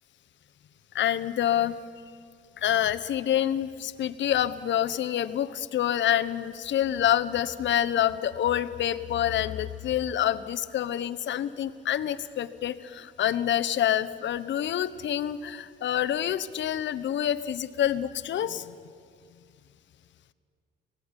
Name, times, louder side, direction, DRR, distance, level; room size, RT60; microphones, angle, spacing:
voice 1, 0.9-1.8 2.6-18.7, left 11 dB, 65° left, 12 dB, 1.1 m, -27 dB
24.0 x 17.5 x 9.9 m, 2.2 s
cardioid pair, 90°, 20 cm